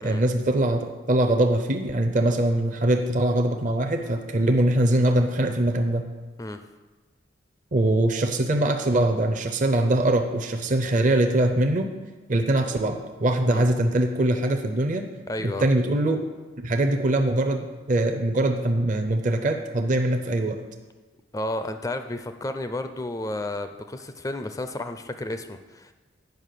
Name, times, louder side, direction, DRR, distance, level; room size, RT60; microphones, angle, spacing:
voice 1, 0.0-6.1 7.7-11.9 12.3-15.1 15.4-16.2 16.6-20.6, right 1 dB, 40° right, 6 dB, 0.6 m, -22 dB
voice 2, 15.3-15.7 21.3-25.9, left 1 dB, 15° left, 8 dB, 0.4 m, -32 dB
9.3 x 5.3 x 6.6 m, 1.3 s
head